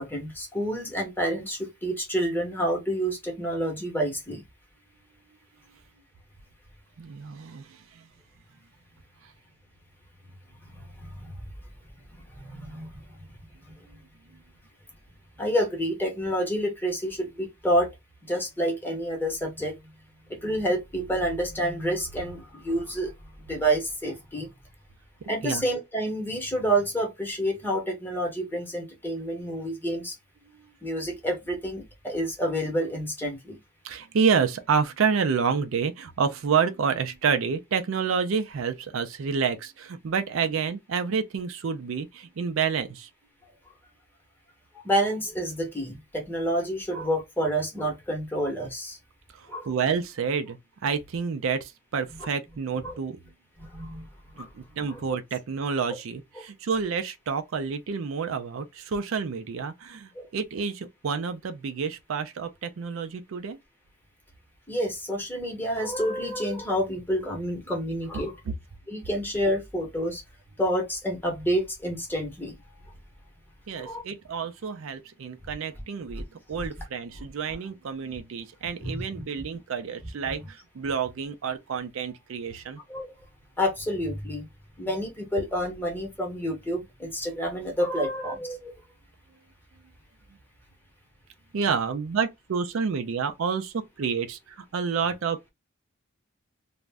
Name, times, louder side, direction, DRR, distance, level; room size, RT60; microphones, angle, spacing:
voice 1, 0.0-4.4 10.6-11.4 12.1-13.0 15.4-17.9 18.3-19.8 20.3-23.1 23.4-24.5 25.3-30.1 30.8-33.6 44.8-49.0 49.5-49.7 52.8-53.0 53.6-54.1 54.4-54.5 54.9-55.0 55.9-56.0 56.4-56.5 60.1-60.3 64.7-68.3 68.9-70.2 70.6-72.6 73.8-74.0 76.1-76.2 78.8-79.0 80.2-80.3 82.9-83.1 83.6-84.4 84.8-88.7, equal, 10° left, 0.8 m, -29 dB
voice 2, 7.0-8.1 25.4-25.6 33.8-43.1 49.3-50.6 50.8-53.2 54.4-63.6 68.5-68.6 73.7-82.8 91.5-95.5, right 6 dB, 70° right, 0.4 m, -29 dB
2.5 x 2.0 x 3.3 m
head